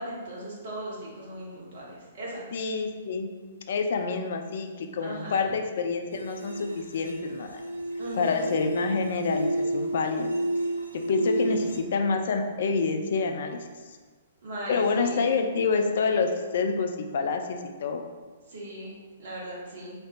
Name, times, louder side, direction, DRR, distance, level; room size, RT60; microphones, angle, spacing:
voice 1, 0.0-2.4 5.0-5.5 8.0-8.4 11.6-11.7 14.4-15.3 18.5-19.9, right 1 dB, 55° right, -6 dB, 1.1 m, -38 dB
voice 2, 2.5-3.3 3.7-7.6 8.1-10.3 10.9-13.7 14.7-18.0, left 4 dB, 55° left, 5 dB, 0.4 m, -27 dB
sound 1, 6.1-11.8, right 1 dB, 85° right, 0.5 m, -31 dB
3.9 x 3.3 x 2.5 m, 1.4 s
figure-of-eight pair, 115°, 0 cm